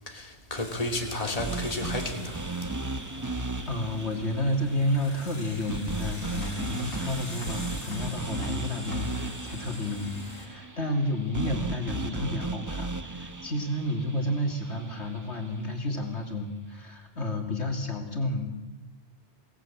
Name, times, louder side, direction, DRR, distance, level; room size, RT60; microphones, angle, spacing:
voice 1, 0.1-2.4, left 1 dB, 30° left, 2 dB, 2.8 m, -32 dB
sound 1, 0.6-10.5, left 1 dB, 60° left, 4.8 m, -43 dB
sound 2, 1.4-15.5, right 3 dB, 20° right, 0.8 m, -36 dB
voice 2, 3.7-18.5, left 1 dB, 75° left, 2 dB, 3.2 m, -31 dB
23.0 x 18.5 x 8.8 m, 1.1 s
omnidirectional pair, 1.2 m